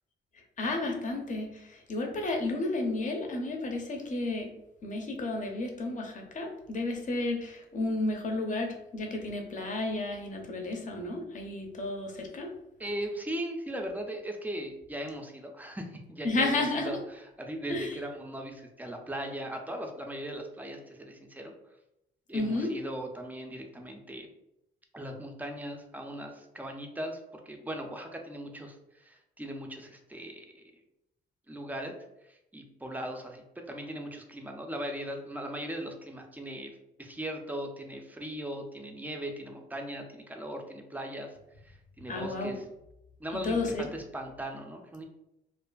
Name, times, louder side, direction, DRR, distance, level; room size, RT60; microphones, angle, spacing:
voice 1, 0.6-4.5 4.8-12.5 16.2-16.9 17.7-18.0 22.3-22.7 42.1-42.6 43.4-43.9, left 2 dB, 40° left, 2 dB, 0.6 m, -32 dB
voice 2, 12.8-21.5 22.3-24.3 24.9-30.6 31.5-31.9 32.2-36.7 37.0-41.4 41.6-42.6 43.2-45.1, right 1 dB, 10° right, 3 dB, 0.4 m, -39 dB
2.4 x 2.4 x 2.2 m, 0.87 s
cardioid pair, 90°, 20 cm